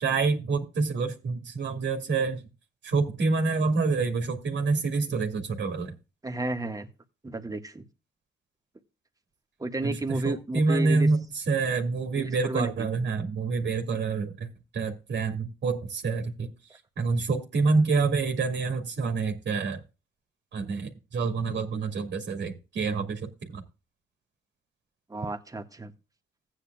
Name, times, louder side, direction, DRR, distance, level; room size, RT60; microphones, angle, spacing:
voice 1, 0.0-2.5 2.8-6.0 9.8-14.5 14.7-19.8 20.5-23.6, right 4 dB, 65° right, 2.3 m, -27 dB
voice 2, 6.2-6.9 7.2-7.8 9.6-11.1 12.1-12.7 25.1-25.9, right 2 dB, 15° right, 1.7 m, -32 dB
15.5 x 9.4 x 2.4 m
cardioid pair, 90°, 20 cm